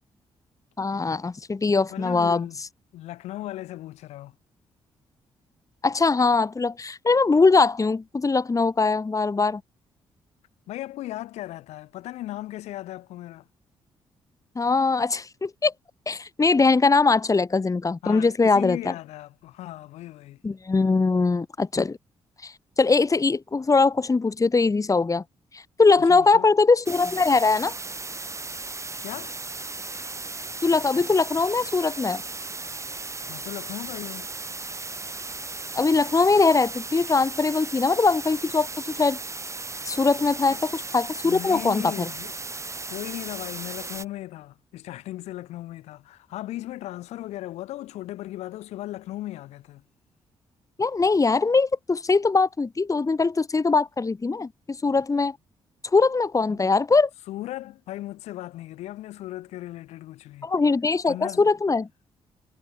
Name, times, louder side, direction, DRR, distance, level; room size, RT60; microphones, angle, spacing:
voice 1, 0.8-2.4 5.8-9.6 14.6-15.7 16.1-18.9 20.4-22.0 22.4-25.2 25.5-27.8 30.6-32.2 35.7-39.2 39.8-42.1 50.8-55.4 55.9-57.1 60.4-61.9, left 4 dB, 30° left, 2.2 m, -21 dB
voice 2, 1.9-2.6 2.9-4.4 10.7-13.5 18.0-20.4 26.0-26.5 29.0-29.4 33.3-34.3 40.4-40.6 41.2-42.3 42.9-49.8 56.5-56.7 57.3-60.5 61.1-61.5, left 15 dB, 85° left, 5.5 m, -37 dB
sound 1, 26.8-44.0, right 3 dB, 25° right, 5.1 m, -36 dB
supercardioid pair, 60°, 11 cm